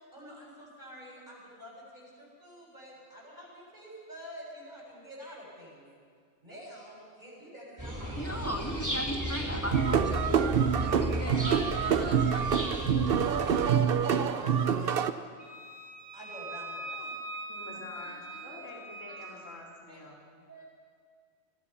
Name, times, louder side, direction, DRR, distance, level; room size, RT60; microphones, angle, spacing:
voice 1, 0.0-5.9 6.4-9.6 13.4-15.1 16.1-17.1 17.5-17.8 18.1-18.6 19.1-19.3 19.9-20.0 20.4-20.7, equal, 40° right, -4 dB, 7.4 m, -48 dB
sound 1, 7.8-13.6, equal, 15° right, 4.1 m, -35 dB
voice 2, 8.2-12.9, equal, 10° left, 4 dB, 1.7 m, -38 dB
sound 2, 9.6-15.1, right 7 dB, 55° right, 0.9 m, -26 dB
Wind instrument woodwind instrument, 15.4-19.4, right 2 dB, 75° right, 3.6 m, -42 dB
voice 3, 17.5-20.3, left 2 dB, 85° left, -3 dB, 4.6 m, -47 dB
26.0 x 18.0 x 5.7 m, 2.1 s
omnidirectional pair, 1.3 m